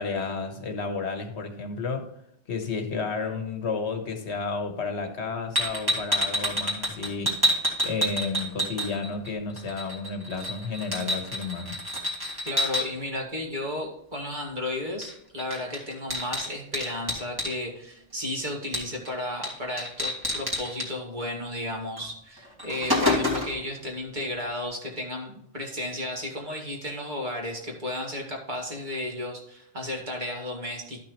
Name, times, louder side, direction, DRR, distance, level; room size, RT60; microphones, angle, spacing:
voice 1, 0.0-2.1 2.5-7.4 7.8-11.8, left 4 dB, 65° left, 6 dB, 1.4 m, -32 dB
sound 1, 5.5-9.3 9.6-12.8 15.0-15.1 15.4-17.5 18.7-19.1 19.4-19.5 19.8-20.9 22.0-22.1 22.4-23.6, equal, 20° right, 2.1 m, -28 dB
voice 2, 12.4-31.0, left 1 dB, 40° right, 0 dB, 2.1 m, -33 dB
13.0 x 5.9 x 3.1 m, 0.74 s
omnidirectional pair, 1.3 m